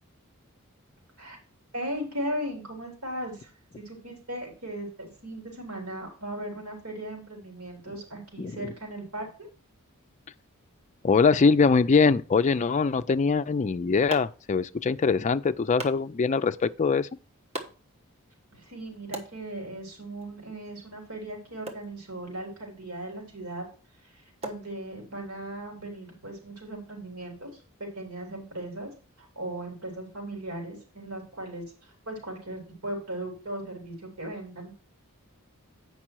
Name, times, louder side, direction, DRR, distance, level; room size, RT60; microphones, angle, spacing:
voice 1, 1.7-9.5 18.5-23.6 24.0-28.9 29.2-34.7, right 1 dB, 90° right, 3.4 m, -37 dB
voice 2, 11.0-17.1, left 5 dB, 35° left, 0.4 m, -23 dB
sound 1, 13.4-25.4, right 2 dB, 30° right, 1.2 m, -46 dB
8.6 x 5.4 x 4.5 m
head